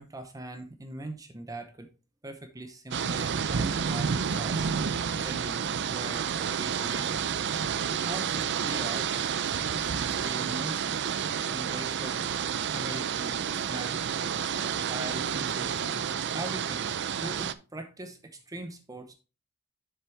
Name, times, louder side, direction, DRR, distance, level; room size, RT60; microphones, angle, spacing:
voice 1, 0.0-1.9 2.2-4.6 5.2-7.4 8.0-9.3 9.6-11.0 11.5-14.1 14.6-19.1, right 1 dB, 15° right, 7 dB, 0.7 m, -41 dB
sound 1, 2.9-17.5, right 7 dB, 50° right, 0.5 m, -30 dB
7.3 x 7.0 x 3.2 m, 0.31 s
head